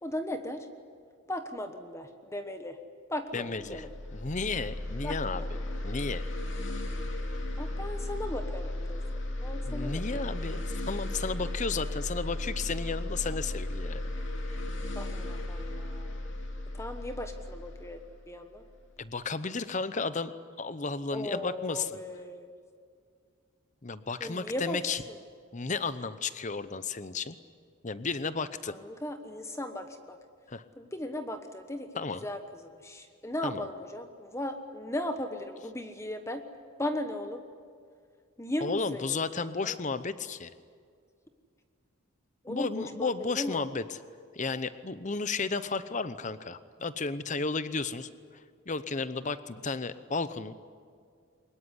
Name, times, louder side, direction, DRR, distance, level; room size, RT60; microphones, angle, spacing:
voice 1, 0.0-0.7 1.3-2.8 3.1-3.9 5.0-5.5 7.6-9.0 9.4-10.2 14.9-16.3 16.7-18.6 21.1-22.5 24.2-24.8 25.1-25.2 28.7-30.2 30.8-31.9 32.2-36.4 36.8-37.4 38.4-39.8 42.4-43.7, left 1 dB, 15° left, 7 dB, 1.2 m, -37 dB
voice 2, 3.3-3.9 4.1-5.4 5.8-6.2 9.6-14.0 19.0-20.3 20.6-22.0 23.8-25.0 25.5-27.4 27.8-28.8 30.5-30.6 32.0-32.3 33.4-33.7 38.6-40.5 42.5-44.0 44.3-48.1 48.7-50.6, left 4 dB, 35° left, 14 dB, 0.8 m, -33 dB
sound 1, 3.5-18.9, left 1 dB, 60° left, 2.7 m, -35 dB
23.5 x 20.5 x 9.9 m, 2.2 s
head